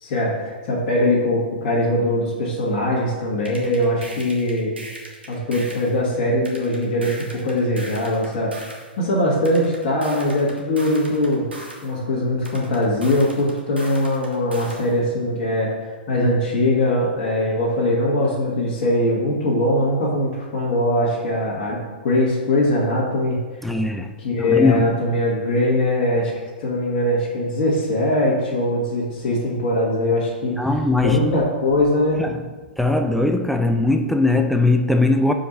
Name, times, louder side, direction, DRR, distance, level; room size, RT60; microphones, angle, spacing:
voice 1, 0.0-4.7 5.3-8.6 9.0-11.4 11.8-15.8 16.1-23.4 24.2-26.3 26.6-30.6 31.0-32.2, left 1 dB, 45° left, -4 dB, 1.6 m, -21 dB
sound 1, 3.5-5.9 6.5-8.9 9.5-11.9 12.4-14.9, right 1 dB, 75° right, 1.3 m, -39 dB
voice 2, 23.6-25.0 30.6-31.5 32.2-32.4 32.8-35.3, left 2 dB, ahead, 5 dB, 0.3 m, -20 dB
5.0 x 4.0 x 5.4 m, 1.3 s
figure-of-eight pair, 105°, 6 cm